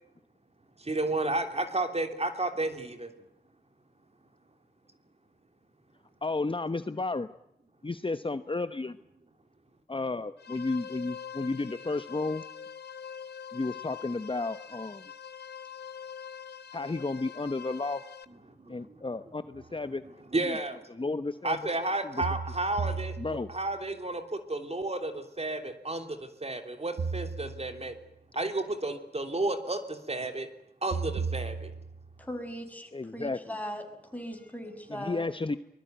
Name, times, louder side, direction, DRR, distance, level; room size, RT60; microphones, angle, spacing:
voice 1, 0.8-3.1 18.3-19.3 19.7-20.8 21.4-27.9 28.3-30.5 30.8-31.7, right 2 dB, 40° right, 7 dB, 3.2 m, -32 dB
voice 2, 6.2-7.3 7.8-9.0 9.9-12.4 13.5-15.1 16.7-18.0 18.7-20.0 20.4-20.6 21.0-21.6 22.0-22.2 23.2-23.5 32.9-33.5 34.9-35.6, left 3 dB, 30° left, 11 dB, 1.0 m, -32 dB
sound 1, 10.4-18.2, left 8 dB, 80° left, 1.2 m, -44 dB
sound 2, 19.6-19.7 22.2-23.8 27.0-28.1 30.9-32.2, right 5 dB, 75° right, 0.9 m, -35 dB
voice 3, 32.2-33.8 34.1-35.2, equal, 10° left, 5 dB, 6.4 m, -39 dB
23.0 x 21.0 x 9.3 m, 0.83 s
cardioid pair, 45°, 17 cm